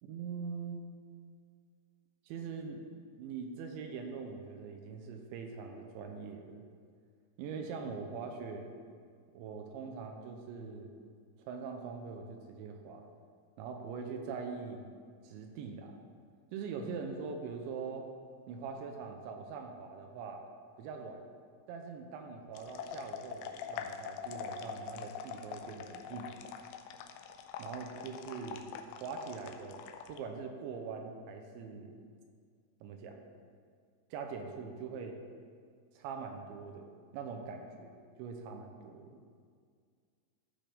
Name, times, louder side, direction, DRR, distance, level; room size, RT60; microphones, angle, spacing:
voice 1, 0.0-0.8 2.3-2.8 3.2-6.7 7.4-8.7 9.3-10.9 11.4-13.1 13.6-14.9 15.2-16.0 16.5-18.1 18.5-20.5 20.8-21.2 21.7-26.3 27.6-28.6 29.0-32.0 32.8-33.2 34.1-35.2 36.0-37.9 38.2-39.2, right 5 dB, 80° right, 4 dB, 2.9 m, -42 dB
sound 1, 22.5-30.2, left 7 dB, 85° left, 2.5 m, -44 dB
15.0 x 5.8 x 3.5 m, 2.1 s
omnidirectional pair, 5.5 m